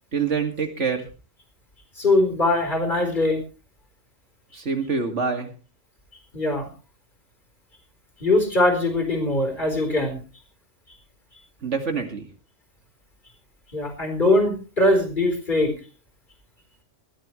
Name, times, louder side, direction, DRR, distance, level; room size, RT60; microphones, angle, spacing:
voice 1, 0.1-1.0 4.5-5.5 11.6-12.2, right 5 dB, 75° right, 5 dB, 2.6 m, -26 dB
voice 2, 2.0-3.4 6.3-6.7 8.2-10.2 13.7-15.7, left 2 dB, 40° left, 4 dB, 4.5 m, -21 dB
20.5 x 13.5 x 3.2 m, 0.33 s
omnidirectional pair, 1.2 m